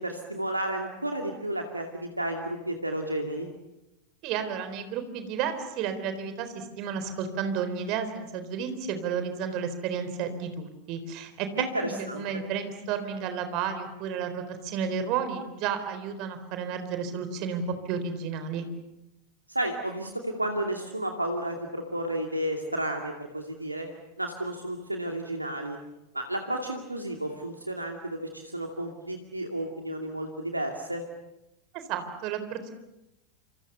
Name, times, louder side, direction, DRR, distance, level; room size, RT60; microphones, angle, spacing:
voice 1, 0.0-3.5 11.6-12.2 19.5-23.9 24.2-25.8 26.1-31.0, right 1 dB, 85° right, 3 dB, 2.5 m, -32 dB
voice 2, 4.2-18.6 31.7-32.7, right 7 dB, 40° right, 9 dB, 4.0 m, -32 dB
27.5 x 26.5 x 7.0 m, 0.92 s
figure-of-eight pair, 90°, 0 cm